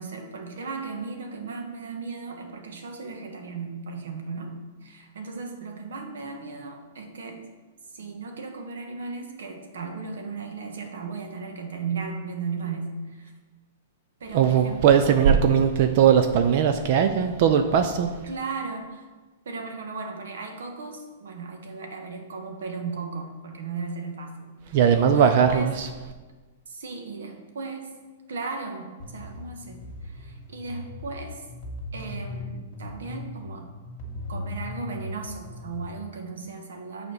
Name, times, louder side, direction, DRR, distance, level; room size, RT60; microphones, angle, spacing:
voice 1, 0.0-7.4 7.9-13.3 14.2-15.2 18.2-19.1 19.4-24.8 25.1-25.7 26.7-27.9 28.3-31.5 31.9-33.7 34.3-37.1, right 4 dB, 90° right, 4 dB, 1.4 m, -36 dB
voice 2, 14.3-18.2 24.7-25.9, right 8 dB, 45° right, 8 dB, 0.5 m, -19 dB
sound 1, 29.0-35.9, left 2 dB, 35° left, 2.0 m, -38 dB
6.8 x 4.3 x 6.6 m, 1.3 s
hypercardioid pair, 160°, 0 cm